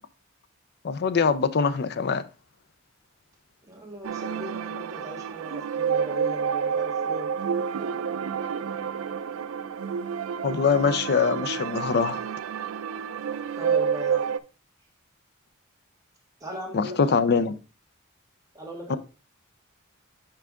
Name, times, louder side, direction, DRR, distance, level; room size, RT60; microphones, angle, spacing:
voice 1, 0.8-2.2 10.4-12.2 16.7-17.5 18.9-19.0, left 5 dB, 50° left, 0.5 m, -23 dB
voice 2, 3.6-7.3 13.6-14.4 16.4-17.4 18.5-19.0, equal, 15° right, 1.8 m, -39 dB
sound 1, 4.0-14.4, right 7 dB, 80° right, 0.4 m, -29 dB
5.8 x 4.8 x 3.6 m
head